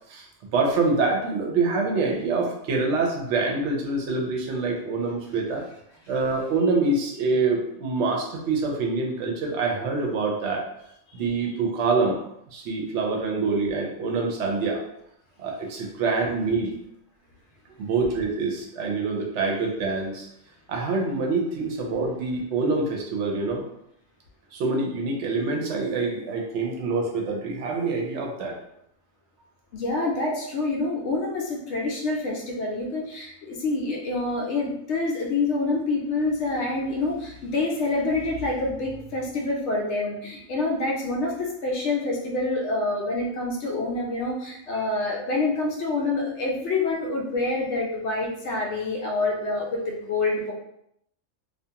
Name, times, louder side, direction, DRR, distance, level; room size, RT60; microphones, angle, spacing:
voice 1, 0.1-5.6 6.1-10.7 11.1-12.2 12.5-14.8 15.4-16.7 17.8-20.3 20.7-23.6 24.5-28.6 29.9-30.0, right 3 dB, 65° right, 0 dB, 0.9 m, -25 dB
voice 2, 29.7-50.5, left 2 dB, 70° left, -1 dB, 0.8 m, -27 dB
2.4 x 2.3 x 2.8 m, 0.76 s
omnidirectional pair, 1.3 m